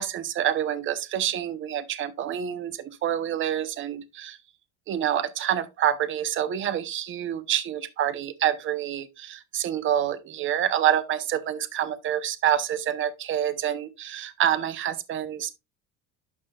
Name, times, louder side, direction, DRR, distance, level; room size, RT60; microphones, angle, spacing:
voice 1, 0.0-4.4 4.9-15.5, right 10 dB, 30° right, 0.8 m, -27 dB
11.5 x 6.0 x 2.3 m
cardioid pair, 165°, 40 cm